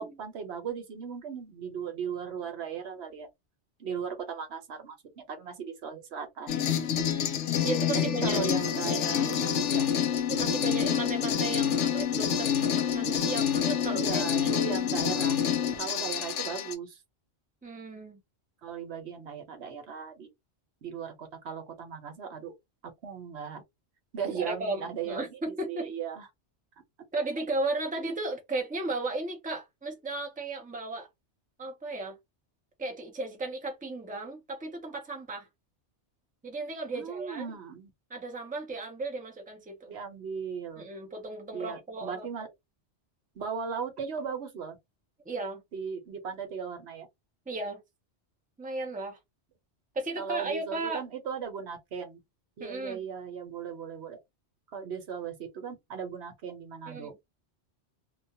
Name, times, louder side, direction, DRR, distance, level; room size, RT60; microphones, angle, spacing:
voice 1, 0.0-3.3 3.8-6.6 7.9-9.3 9.7-9.9 13.9-15.4 15.8-17.0 18.6-20.3 20.8-22.5 23.0-23.6 24.1-26.3 36.9-37.9 39.9-40.8 41.5-42.5 43.4-44.8 45.7-47.1 50.2-52.2 52.6-54.2 54.7-57.1, right 6 dB, 70° right, 1.1 m, -37 dB
sound 1, 6.5-16.7, left 8 dB, 85° left, 0.9 m, -27 dB
voice 2, 7.6-8.5 8.8-9.4 10.3-14.7 17.6-18.2 24.3-25.9 27.1-31.1 31.6-32.2 32.8-35.5 36.4-37.5 38.1-40.0 40.8-42.5 45.3-45.6 47.5-47.8 48.6-49.2 49.9-51.0 52.6-53.0 56.9-57.2, right 2 dB, 10° right, 0.5 m, -35 dB
2.4 x 2.3 x 2.7 m
omnidirectional pair, 1.2 m